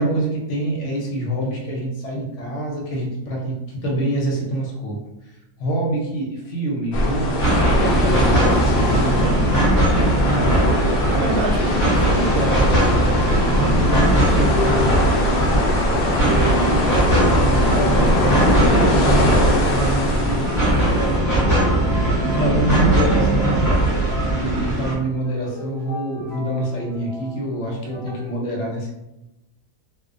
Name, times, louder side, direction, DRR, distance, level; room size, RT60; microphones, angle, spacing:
voice 1, 0.0-5.0 5.6-9.5 13.3-13.9 15.5-16.0 21.9-23.6 24.3-28.9, right 1 dB, 65° left, -2 dB, 0.9 m, -26 dB
sound 1, 6.9-21.2, left 1 dB, 90° left, 0.5 m, -21 dB
sound 2, 7.4-24.9, right 1 dB, 15° left, 0.7 m, -20 dB
sound 3, 9.9-28.2, right 1 dB, 55° right, 0.8 m, -33 dB
voice 2, 10.3-10.7 11.1-15.0 15.9-20.5 20.9-22.1 23.0-23.4, right 2 dB, 90° right, 1 dB, 1.1 m, -28 dB
2.5 x 2.0 x 2.4 m, 0.92 s
omnidirectional pair, 1.5 m